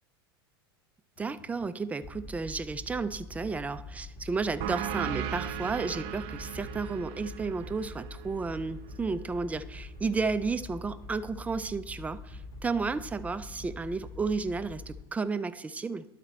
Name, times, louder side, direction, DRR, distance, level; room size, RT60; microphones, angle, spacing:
sound 1, 1.2-15.0, left 2 dB, 30° left, 2.0 m, -45 dB
voice 1, 1.2-16.1, right 4 dB, 10° right, 13 dB, 0.4 m, -32 dB
sound 2, 4.6-9.8, right 9 dB, 50° right, 0.7 m, -38 dB
11.5 x 4.1 x 4.3 m, 1.0 s
hypercardioid pair, 95°, 13 cm